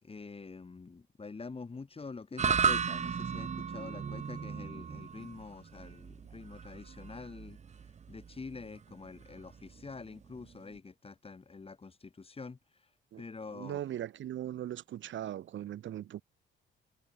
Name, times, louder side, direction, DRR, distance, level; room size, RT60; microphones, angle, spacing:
voice 1, 0.0-12.9 13.2-13.8, left 4 dB, 30° left, 5.1 m, -46 dB
sound 1, 2.4-10.8, right 6 dB, 35° right, 0.8 m, -35 dB
voice 2, 13.6-16.2, right 11 dB, 70° right, 3.4 m, -39 dB
cardioid pair, 90°, 20 cm